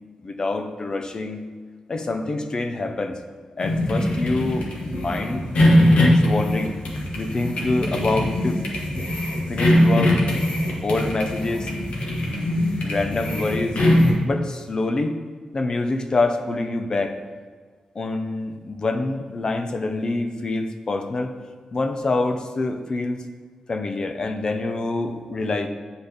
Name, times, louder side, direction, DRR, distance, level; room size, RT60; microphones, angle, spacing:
voice 1, 0.2-1.4 1.9-3.2 3.6-5.4 6.0-6.8 7.1-8.6 9.5-10.2 10.8-11.7 12.8-13.8 14.2-15.2 15.5-17.2 17.9-21.3 21.7-23.2 23.7-25.7, left 2 dB, 35° left, 6 dB, 0.6 m, -26 dB
sound 1, 3.6-14.1, left 1 dB, 70° left, 1.3 m, -21 dB
9.6 x 4.1 x 3.5 m, 1.5 s
wide cardioid pair, 140°, 2 cm